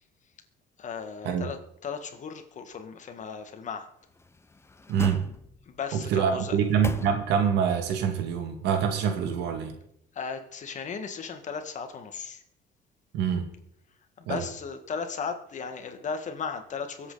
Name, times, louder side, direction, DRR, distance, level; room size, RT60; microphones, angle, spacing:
voice 1, 0.8-3.9 5.7-6.6 10.1-12.4 14.2-17.1, left 5 dB, 45° left, 7 dB, 1.9 m, -36 dB
sound 1, 4.1-5.8 6.3-7.6 8.0-8.1, left 3 dB, 15° left, 0.8 m, -39 dB
voice 2, 4.9-5.3 5.9-9.7 13.1-13.5 14.3-14.5, right 7 dB, 85° right, 6 dB, 2.3 m, -26 dB
23.5 x 8.1 x 4.1 m, 0.73 s
cardioid pair, 110°, 17 cm